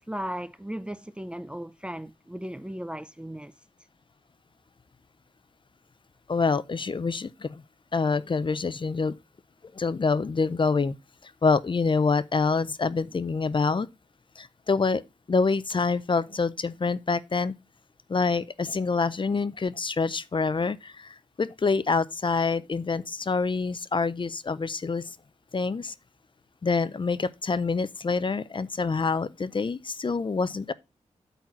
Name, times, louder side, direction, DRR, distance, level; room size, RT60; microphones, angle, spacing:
voice 1, 0.1-3.5, equal, 10° right, 0.4 m, -36 dB
voice 2, 6.3-7.6 7.9-9.2 9.7-11.0 11.2-13.9 14.4-15.0 15.3-17.5 18.1-25.2 25.5-25.9 26.6-30.7, left 4 dB, 40° left, 0.5 m, -26 dB
8.5 x 4.1 x 5.9 m
wide cardioid pair, 75°, 12 cm